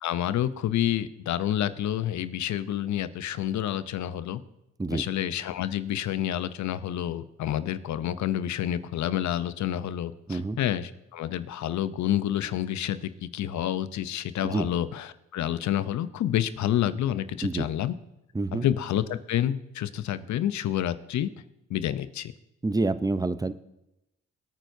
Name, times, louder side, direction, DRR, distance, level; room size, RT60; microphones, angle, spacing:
voice 1, 0.0-4.4 4.9-18.0 18.5-21.3 21.7-22.3, left 11 dB, 75° left, 13 dB, 0.7 m, -29 dB
voice 2, 18.3-18.6 22.6-23.5, right 2 dB, 10° right, 13 dB, 0.6 m, -27 dB
22.0 x 9.1 x 2.7 m, 0.88 s
supercardioid pair, 60°, 29 cm